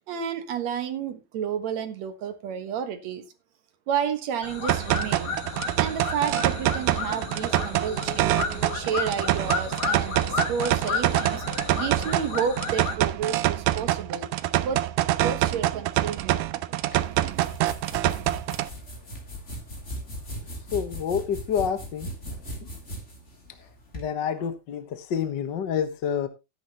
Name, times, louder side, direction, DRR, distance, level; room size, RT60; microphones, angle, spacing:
voice 1, 0.1-3.3 3.9-5.4 5.8-11.4 11.7-14.3 14.6-14.9 15.2-17.5, right 7 dB, 60° right, 2.4 m, -31 dB
sound 1, 4.4-13.0, left 4 dB, 40° left, 1.6 m, -32 dB
sound 2, 4.7-18.7, right 15 dB, 75° right, 2.1 m, -26 dB
sound 3, 16.9-24.1, equal, 20° left, 2.9 m, -38 dB
voice 2, 20.7-22.1 23.9-26.3, left 7 dB, 75° left, 1.0 m, -28 dB
13.0 x 10.5 x 3.0 m
omnidirectional pair, 4.0 m